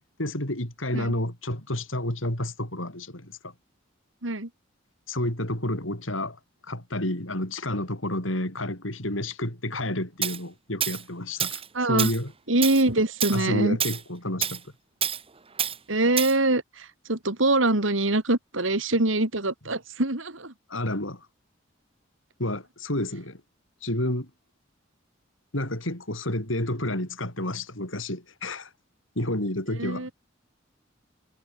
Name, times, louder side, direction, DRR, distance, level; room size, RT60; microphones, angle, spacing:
voice 1, 0.2-3.5 5.1-6.4 6.7-12.3 13.3-14.6 20.7-21.3 22.4-23.4 23.8-24.3 25.5-28.7 29.2-30.1, left 1 dB, 90° left, 7.8 m, -30 dB
Tools, 10.2-10.4 10.8-11.0 11.4-11.7 12.0-12.2 12.6-12.8 13.2-13.4 13.8-14.0 14.4-14.6 15.0-15.2 15.6-15.8 16.2-16.4, right 9 dB, 30° right, 1.7 m, -27 dB
voice 2, 11.7-12.1 12.5-13.8 15.9-20.5 29.7-30.1, right 2 dB, 80° right, 3.1 m, -24 dB
head